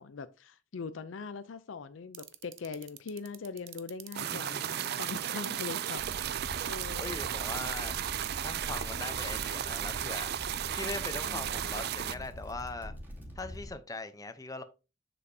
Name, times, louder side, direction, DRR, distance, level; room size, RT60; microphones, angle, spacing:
voice 1, 0.0-6.0 6.7-7.1 11.3-12.3, left 4 dB, 85° left, 0.5 m, -42 dB
sound 1, 2.1-5.8 6.0-8.6 10.1-10.8, right 16 dB, 85° right, 0.7 m, -43 dB
sound 2, 4.1-12.1, right 10 dB, 55° right, 0.4 m, -35 dB
voice 2, 4.2-5.0 7.0-10.4 10.7-12.9 13.4-14.6, left 3 dB, 20° left, 0.7 m, -41 dB
sound 3, 6.0-13.7, equal, 10° right, 2.4 m, -44 dB
7.3 x 6.7 x 2.7 m
head